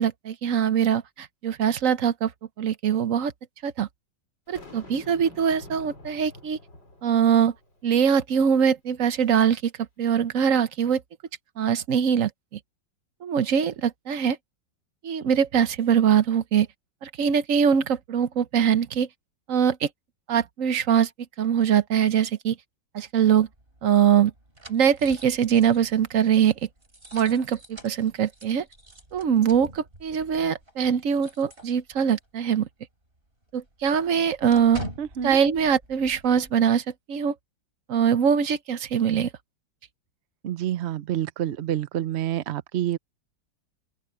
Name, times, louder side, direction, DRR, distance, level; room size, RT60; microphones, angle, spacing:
voice 1, 0.0-2.3 2.6-3.3 3.6-3.9 4.5-6.6 7.0-7.5 7.8-9.7 10.0-11.0 11.6-12.3 13.2-14.4 15.0-16.7 17.0-19.1 19.5-19.9 20.3-21.1 21.4-22.6 22.9-23.5 23.8-24.3 24.7-26.5 27.1-28.6 29.1-32.7 33.5-34.8 35.2-36.8 37.1-37.3 37.9-39.3, right 8 dB, 55° right, 1.1 m, -22 dB
Boom, 4.5-7.9, left 2 dB, 70° left, 7.7 m, -47 dB
sound 1, 23.4-32.3 32.6-32.7 33.0-36.5, right 1 dB, 30° right, 6.3 m, -45 dB
voice 2, 35.0-35.4 40.4-43.0, right 11 dB, 75° right, 0.6 m, -28 dB
open air
omnidirectional pair, 2.0 m